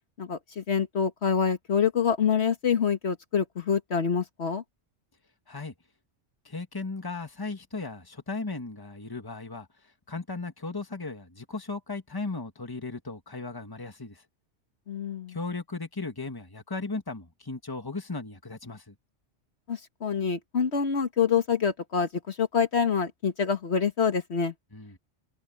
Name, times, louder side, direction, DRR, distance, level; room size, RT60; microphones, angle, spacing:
voice 1, 0.2-4.6 14.9-15.4 19.7-24.5, left 6 dB, 65° left, 1.6 m, -26 dB
voice 2, 6.4-9.7 10.1-14.2 15.3-18.9 24.7-25.0, left 3 dB, 20° left, 1.7 m, -36 dB
omnidirectional pair, 1.2 m